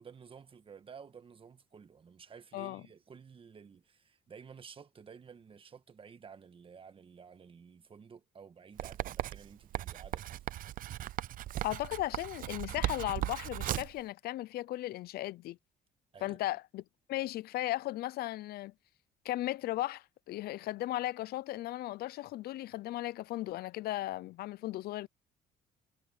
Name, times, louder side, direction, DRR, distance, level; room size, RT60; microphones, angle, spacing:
voice 1, 0.0-10.5 16.1-16.4, right 6 dB, 30° right, 1.5 m, -53 dB
voice 2, 2.5-2.8 11.6-15.6 16.2-16.8 17.1-18.7 19.2-25.1, left 15 dB, 70° left, 0.6 m, -36 dB
Writing, 8.8-14.0, right 13 dB, 55° right, 0.5 m, -37 dB
cardioid pair, 110°, 17 cm